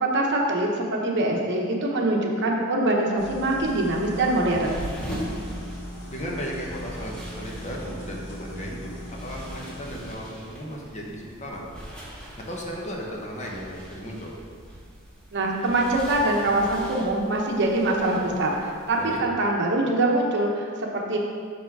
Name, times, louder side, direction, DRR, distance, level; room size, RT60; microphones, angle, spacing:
voice 1, 0.0-4.8 15.3-21.2, right 2 dB, 55° right, 0 dB, 1.0 m, -24 dB
sound 1, 3.2-10.3, equal, 90° left, 1.6 m, -39 dB
sound 2, 3.6-19.2, equal, 5° left, 1.7 m, -41 dB
voice 2, 6.1-11.6 12.4-14.3 19.0-19.2, equal, 35° left, -2 dB, 1.1 m, -35 dB
6.4 x 5.9 x 4.7 m, 2.1 s
head